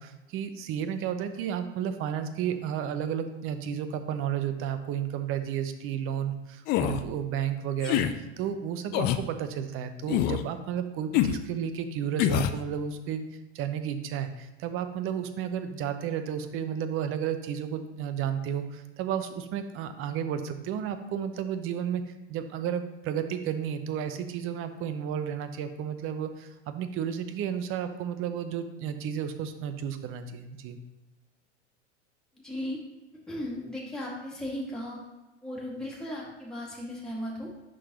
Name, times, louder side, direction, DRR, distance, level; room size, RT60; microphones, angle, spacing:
voice 1, 0.0-8.0 8.4-13.2 13.5-22.0 22.3-30.8, right 8 dB, 35° right, 10 dB, 0.7 m, -32 dB
sound 1, 6.7-7.0 7.8-8.1 8.9-9.2 10.1-10.4 11.1-11.4 12.2-12.6, left 12 dB, 30° left, 0.4 m, -25 dB
voice 2, 32.4-32.8 33.3-35.0 35.4-37.5, left 1 dB, ahead, -5 dB, 2.1 m, -36 dB
11.0 x 3.9 x 3.0 m, 1.1 s
hypercardioid pair, 90°, 35 cm